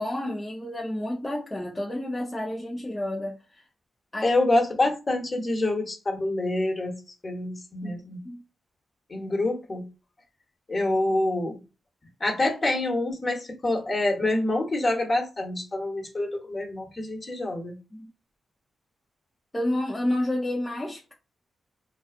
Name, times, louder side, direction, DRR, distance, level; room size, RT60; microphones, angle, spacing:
voice 1, 0.0-3.4 4.1-4.3 7.8-8.0 8.2-8.4 17.9-18.1 19.5-21.1, left 1 dB, 25° left, 0.7 m, -30 dB
voice 2, 4.2-8.2 9.1-9.9 10.7-11.6 12.2-17.8, left 2 dB, 40° left, 1.1 m, -26 dB
2.4 x 2.4 x 2.4 m
supercardioid pair, 45°, 0 cm